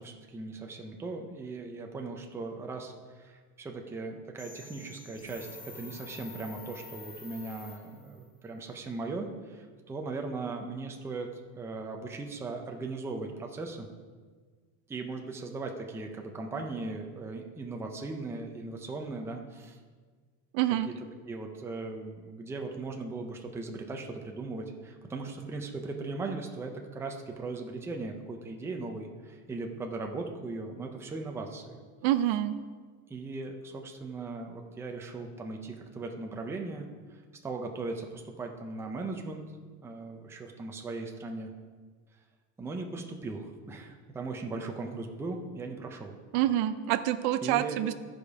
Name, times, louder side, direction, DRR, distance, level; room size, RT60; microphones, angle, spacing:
voice 1, 0.0-11.3 11.6-13.9 14.9-19.8 20.9-21.0 21.3-31.8 33.1-39.4 39.8-41.5 42.6-46.1 47.4-47.8, right 3 dB, 5° right, 2 dB, 0.4 m, -38 dB
sound 1, 4.4-8.2, left 4 dB, 25° left, 1.1 m, -48 dB
voice 2, 20.5-20.9 32.0-32.5 46.3-47.9, right 13 dB, 85° right, 12 dB, 0.7 m, -27 dB
13.0 x 5.1 x 4.7 m, 1.5 s
cardioid pair, 175°, 37 cm